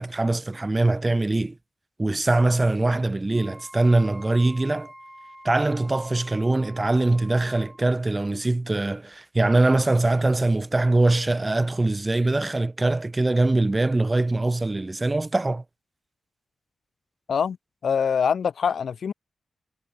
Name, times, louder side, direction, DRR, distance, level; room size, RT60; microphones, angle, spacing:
voice 1, 0.0-1.5 2.0-4.9 5.4-15.6, right 2 dB, 25° right, 0.6 m, -22 dB
Wind instrument woodwind instrument, 3.3-7.9, equal, 5° right, 3.4 m, -47 dB
voice 2, 17.8-19.1, left 7 dB, 80° left, 0.7 m, -24 dB
cardioid pair, 55°, 0 cm